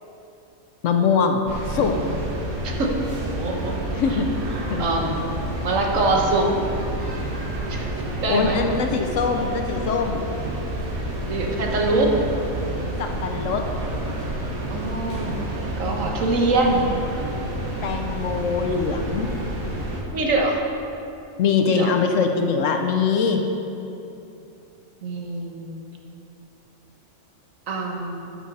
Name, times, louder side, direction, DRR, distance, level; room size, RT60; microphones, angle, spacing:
voice 1, 0.8-1.9 3.9-4.3 4.7-4.8 5.6-5.7 8.3-10.2 13.0-13.6 17.8-19.3 21.4-23.4, left 5 dB, 70° left, 4 dB, 1.0 m, -22 dB
sound 1, 1.4-20.0, right 1 dB, 90° right, 1.7 m, -29 dB
voice 2, 3.2-3.7 4.8-6.5 7.7-7.9 8.2-8.6 11.3-12.1 14.7-17.0 20.1-20.6 21.7-21.9 25.0-25.8 27.7-28.4, right 2 dB, 65° right, 0 dB, 1.4 m, -24 dB
12.0 x 6.0 x 4.1 m, 2.8 s
omnidirectional pair, 1.5 m